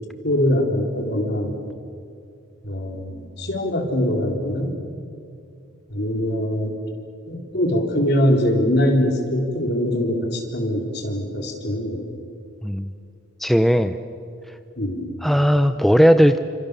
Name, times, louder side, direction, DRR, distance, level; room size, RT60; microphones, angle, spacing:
voice 1, 0.2-1.7 2.6-4.7 5.9-6.8 7.3-12.1 14.8-15.1, equal, 55° left, 2 dB, 4.1 m, -22 dB
voice 2, 12.6-12.9 13.4-14.0 15.2-16.4, equal, ahead, 9 dB, 0.6 m, -17 dB
28.5 x 26.5 x 6.9 m, 2.5 s
head